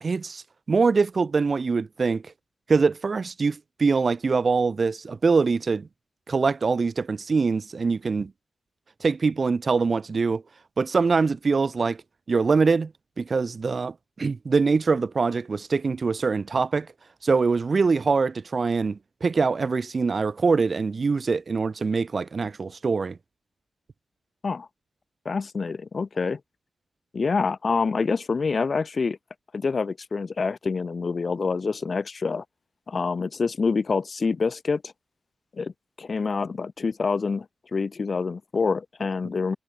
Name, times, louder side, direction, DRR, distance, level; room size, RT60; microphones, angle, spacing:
voice 1, 0.0-2.3 2.7-5.9 6.3-8.3 9.0-10.4 10.8-12.0 12.3-12.9 13.2-16.9 17.2-23.2, right 4 dB, 40° right, 0.4 m, -23 dB
voice 2, 25.3-26.4 27.1-29.2 29.5-32.4 32.9-34.9 35.6-35.7 36.0-37.5 37.7-39.6, left 4 dB, 40° left, 0.4 m, -26 dB
wide cardioid pair, 155°, 0 cm